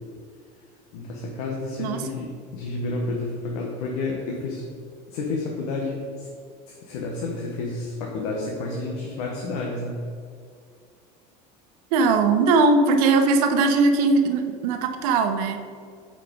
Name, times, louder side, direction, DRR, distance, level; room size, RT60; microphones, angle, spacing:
voice 1, 0.9-4.6 5.1-6.3 6.7-10.0, left 3 dB, 85° left, -1 dB, 1.2 m, -30 dB
voice 2, 11.9-15.6, right 3 dB, 90° right, 6 dB, 0.9 m, -20 dB
8.7 x 5.0 x 4.6 m, 2.2 s
cardioid pair, 140°, 19 cm